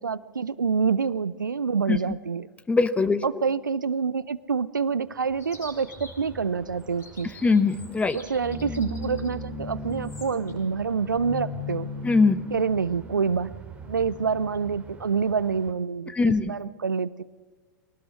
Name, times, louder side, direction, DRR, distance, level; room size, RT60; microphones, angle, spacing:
voice 1, 0.0-2.5 3.2-7.3 8.1-11.9 12.5-13.5 13.9-17.2, right 5 dB, 80° right, 18 dB, 0.5 m, -27 dB
voice 2, 2.7-3.2 7.4-8.2 12.0-12.4 16.1-16.5, left 4 dB, 10° left, 13 dB, 0.8 m, -21 dB
sound 1, 5.3-15.7, left 1 dB, 15° right, 2.7 m, -39 dB
Chirp tweet, 5.4-10.5, left 2 dB, 30° left, 6.1 m, -49 dB
23.0 x 19.0 x 6.3 m, 1.4 s
figure-of-eight pair, 90°, 10 cm